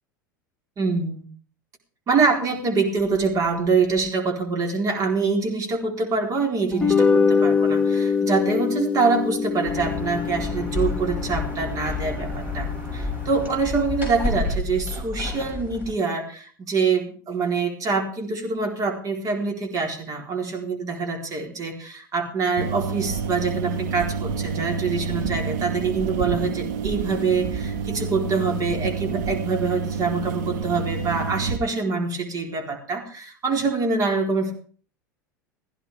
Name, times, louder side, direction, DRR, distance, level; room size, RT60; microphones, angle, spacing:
voice 1, 0.8-1.3 2.1-34.5, right 4 dB, 35° right, 3 dB, 4.1 m, -25 dB
sound 1, 6.7-13.2, left 5 dB, 10° left, 1.9 m, -24 dB
sound 2, 9.6-15.9, left 2 dB, 20° right, 6.9 m, -30 dB
sound 3, 22.6-31.6, right 6 dB, 60° right, 1.9 m, -28 dB
16.0 x 15.5 x 3.6 m, 0.43 s
figure-of-eight pair, 80°, 11 cm